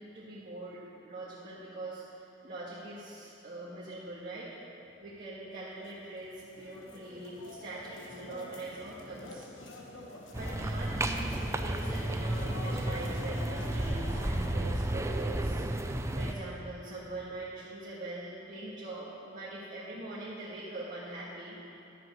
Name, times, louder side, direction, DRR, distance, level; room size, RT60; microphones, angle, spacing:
voice 1, 0.0-4.5 5.0-9.4 10.3-15.6 16.1-21.6, right 2 dB, 45° right, -8 dB, 1.7 m, -42 dB
sound 1, 5.8-14.5, left 1 dB, 75° left, 1.2 m, -46 dB
sound 2, 10.3-16.3, right 1 dB, 15° right, 0.5 m, -32 dB
12.0 x 7.5 x 6.2 m, 2.8 s
head